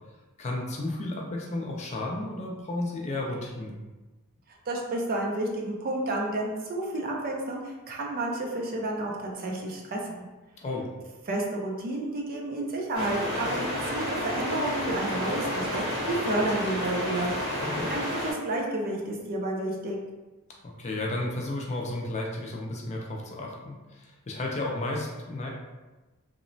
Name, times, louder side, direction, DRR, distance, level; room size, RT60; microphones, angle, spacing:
voice 1, 0.4-3.8 10.6-10.9 17.6-17.9 20.6-25.5, left 2 dB, 30° left, -1 dB, 0.4 m, -33 dB
voice 2, 4.7-10.3 11.3-17.3 17.9-20.0, right 2 dB, 45° right, 0 dB, 0.4 m, -31 dB
sound 1, 12.9-18.3, left 1 dB, 85° right, 1.2 m, -30 dB
2.9 x 2.0 x 2.6 m, 1.2 s
head